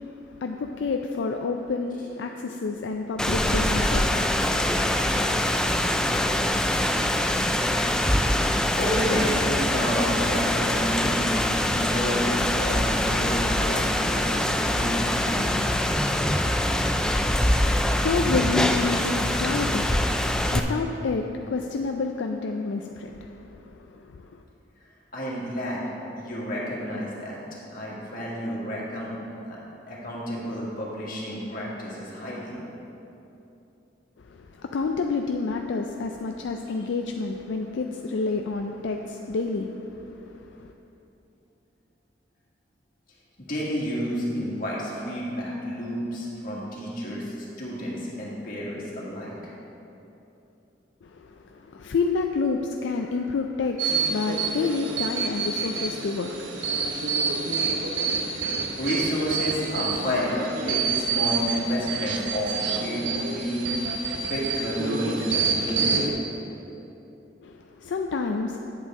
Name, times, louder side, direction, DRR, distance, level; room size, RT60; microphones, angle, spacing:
voice 1, 0.0-5.7 17.2-24.4 34.2-40.7 51.0-57.4 67.4-68.6, left 4 dB, 75° left, 3 dB, 0.4 m, -30 dB
voice 2, 2.0-2.6 8.7-11.3 11.7-14.5 14.7-15.5 25.1-25.8 26.2-27.4 27.7-29.1 29.5-29.6 29.9-32.6 43.4-49.3 58.3-63.7 64.2-66.0, equal, 50° left, -5 dB, 2.0 m, -30 dB
Rain, 3.2-20.6, left 1 dB, 5° left, 0.3 m, -24 dB
sound 1, 53.8-66.1, right 5 dB, 85° right, 0.8 m, -28 dB
9.2 x 8.1 x 3.7 m, 2.9 s
head